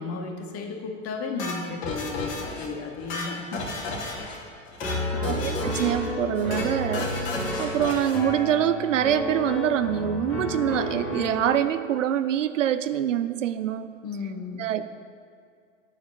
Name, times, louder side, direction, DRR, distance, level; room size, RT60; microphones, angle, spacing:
voice 1, 0.0-3.7 5.1-5.5 14.0-14.7, left 4 dB, 35° left, 3 dB, 1.9 m, -34 dB
sound 1, 1.4-2.7 3.0-4.4 4.7-5.0 5.2-6.1 6.4-6.7 6.9-8.2, left 3 dB, 55° left, 2.7 m, -33 dB
Piano, 4.8-11.7, left 1 dB, ahead, 2.8 m, -31 dB
voice 2, 5.2-7.1 7.6-13.9 14.6-14.9, right 10 dB, 70° right, 13 dB, 0.6 m, -25 dB
9.4 x 7.3 x 8.7 m, 2.2 s
figure-of-eight pair, 90°, 38 cm